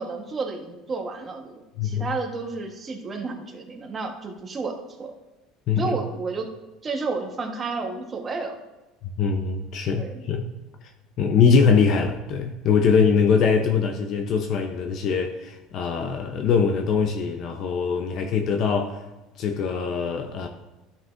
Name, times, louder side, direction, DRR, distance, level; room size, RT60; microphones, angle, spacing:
voice 1, 0.0-5.1 5.8-6.5 6.8-8.6 9.9-10.2, right 4 dB, 25° right, 1.2 m, -31 dB
voice 2, 1.8-2.1 5.7-6.0 9.2-10.5 11.2-19.0 19.4-20.5, left 5 dB, 55° left, 0.7 m, -22 dB
11.5 x 5.8 x 2.6 m
supercardioid pair, 120°, 0 cm